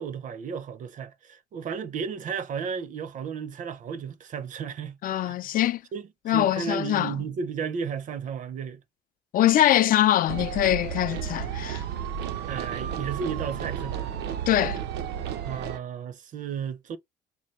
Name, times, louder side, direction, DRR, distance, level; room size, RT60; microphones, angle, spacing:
voice 1, 0.0-5.5 5.9-8.8 12.5-14.1 15.4-17.0, right 6 dB, 50° right, 0.7 m, -34 dB
voice 2, 5.0-5.8 6.3-7.1 9.3-11.8 14.5-14.8, left 13 dB, 55° left, 0.4 m, -23 dB
sound 1, 10.3-15.8, right 9 dB, 80° right, 0.8 m, -32 dB
4.4 x 2.3 x 3.1 m
cardioid pair, 110°, 17 cm